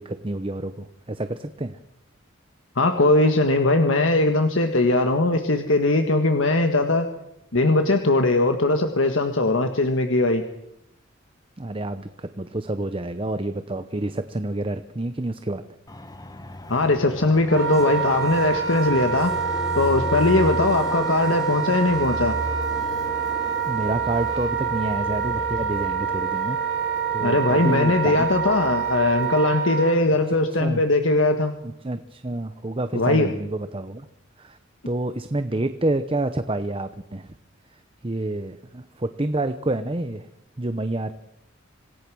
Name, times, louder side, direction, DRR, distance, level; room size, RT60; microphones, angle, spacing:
voice 1, 0.0-1.8 11.6-15.6 23.7-26.6 27.1-28.3 30.6-30.8 31.6-34.1 34.4-34.6 34.9-37.3 38.0-40.3 40.6-41.1, right 2 dB, 25° right, 10 dB, 0.8 m, -28 dB
voice 2, 2.7-7.1 7.5-10.4 16.7-19.3 19.7-22.3 27.2-31.5 32.9-33.3, left 2 dB, 75° left, 6 dB, 1.6 m, -20 dB
Fixed-wing aircraft airplane, 15.9-29.4, left 1 dB, 20° left, 1.5 m, -36 dB
sound 1, 17.5-30.6, right 1 dB, ahead, 3.6 m, -41 dB
Wind instrument woodwind instrument, 17.5-30.0, right 7 dB, 70° right, 5.3 m, -27 dB
27.0 x 17.5 x 6.3 m, 0.82 s
head